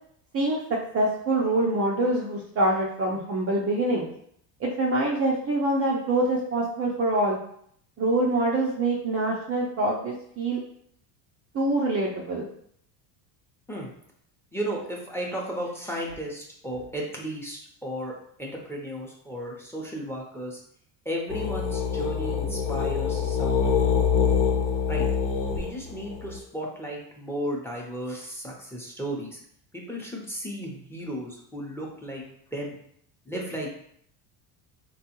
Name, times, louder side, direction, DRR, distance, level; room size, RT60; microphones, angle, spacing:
voice 1, 0.9-4.1 4.6-7.4 8.0-10.6 11.5-12.5, right 2 dB, 30° right, -3 dB, 0.5 m, -25 dB
voice 2, 14.5-20.6 21.0-23.8 24.9-25.1 25.5-29.4 29.7-32.8 33.3-33.7, equal, 5° left, -1 dB, 0.7 m, -34 dB
sound 1, 21.3-26.4, left 6 dB, 55° left, 0.9 m, -25 dB
3.6 x 2.3 x 2.9 m, 0.67 s
hypercardioid pair, 80°, 50 cm